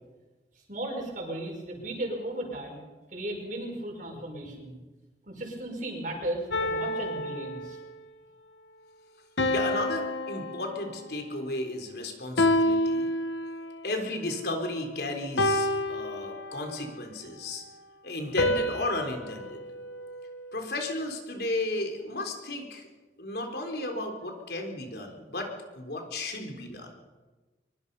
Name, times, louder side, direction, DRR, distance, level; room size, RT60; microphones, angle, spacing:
voice 1, 0.7-2.8 3.1-4.8 5.3-7.8, right 1 dB, 45° right, 1 dB, 5.8 m, -35 dB
sound 1, 6.5-8.0 9.4-11.2 12.4-13.8 15.4-16.8 18.4-20.6, left 1 dB, 85° left, 1.7 m, -29 dB
voice 2, 9.4-13.1 13.8-17.6 18.0-19.6 20.5-22.9 23.2-26.9, left 2 dB, 60° left, 3 dB, 3.9 m, -34 dB
24.0 x 23.0 x 5.5 m, 1.2 s
head